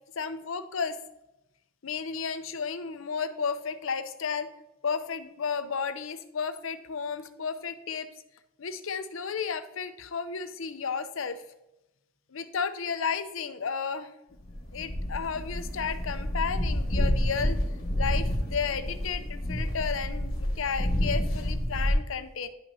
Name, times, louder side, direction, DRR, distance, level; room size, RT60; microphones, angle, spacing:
voice 1, 0.2-1.0 1.8-4.5 4.8-8.1 8.6-11.4 12.3-14.1 14.7-17.6 18.0-22.5, left 6 dB, 70° left, 10 dB, 0.6 m, -33 dB
sound 1, 14.4-21.9, equal, 45° left, 1.7 m, -29 dB
11.0 x 5.7 x 2.7 m, 0.92 s
head